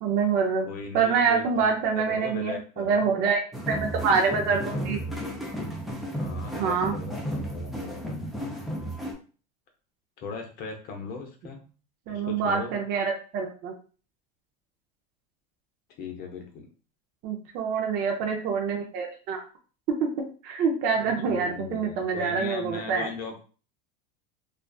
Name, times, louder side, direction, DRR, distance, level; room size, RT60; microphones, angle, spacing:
voice 1, 0.0-0.7 0.9-5.0 6.5-7.0 12.1-13.7 17.2-19.4 20.0-20.1 20.4-23.1, right 5 dB, 45° right, 2 dB, 0.5 m, -26 dB
voice 2, 0.6-3.1 6.2-8.2 10.2-11.6 12.1-12.7 16.0-16.7 20.9-23.4, left 4 dB, 45° left, 3 dB, 0.7 m, -38 dB
sound 1, 3.5-9.1, equal, ahead, 0.5 m, -33 dB
2.4 x 2.3 x 2.3 m, 0.38 s
supercardioid pair, 130°, 21 cm